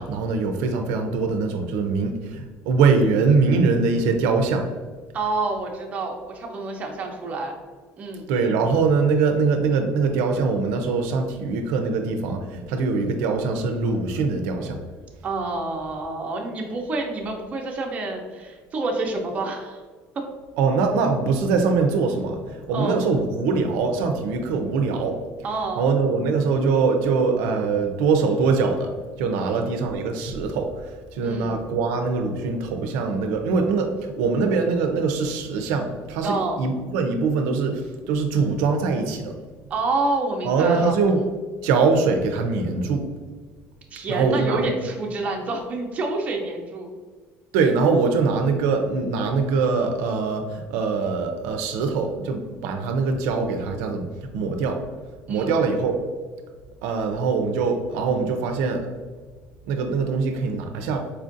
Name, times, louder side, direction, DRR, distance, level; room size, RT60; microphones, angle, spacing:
voice 1, 0.0-4.7 8.3-14.8 20.6-25.2 25.8-28.9 29.2-30.7 31.1-37.8 38.1-39.3 40.5-41.2 41.6-43.0 44.1-44.7 47.5-54.1 54.3-54.8 55.3-56.0 56.8-58.8 59.7-61.0, right 4 dB, 90° right, 5 dB, 0.4 m, -22 dB
voice 2, 5.1-7.5 8.0-8.3 15.2-19.8 20.1-20.2 22.7-23.1 25.4-25.9 29.4-29.7 31.2-31.6 36.2-36.6 39.7-41.3 43.9-46.9 55.3-55.7, right 2 dB, 30° right, 1 dB, 0.5 m, -28 dB
4.3 x 2.4 x 2.6 m, 1.5 s
cardioid pair, 145°, 5 cm